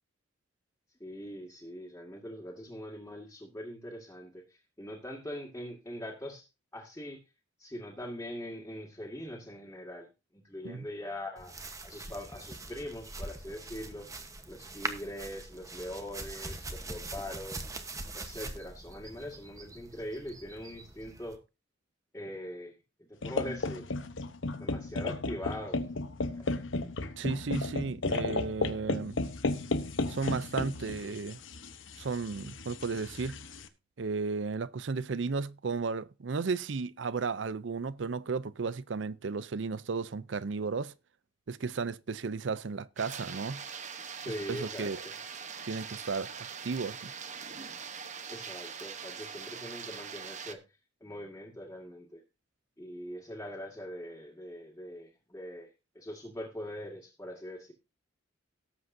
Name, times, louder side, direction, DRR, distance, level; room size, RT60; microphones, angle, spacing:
voice 1, 1.0-6.4 6.7-7.2 7.6-10.1 10.3-11.5 11.8-14.1 14.5-17.6 18.1-21.4 22.1-22.8 23.1-23.9 24.6-25.8 26.3-26.5 44.2-45.0 48.3-50.6 51.0-52.2 52.8-55.7 56.0-57.7, equal, 15° left, 2.1 m, -42 dB
sound 1, 11.4-21.4, right 2 dB, 15° right, 1.1 m, -43 dB
sound 2, 23.2-33.7, left 2 dB, 90° left, 1.0 m, -34 dB
voice 2, 27.2-29.2 30.1-31.4 32.0-33.4 34.0-40.9 41.5-43.6 44.5-45.0 45.7-47.1, right 4 dB, 70° right, 0.6 m, -34 dB
sound 3, 43.0-50.6, right 6 dB, 40° right, 1.0 m, -42 dB
18.5 x 7.7 x 2.7 m
head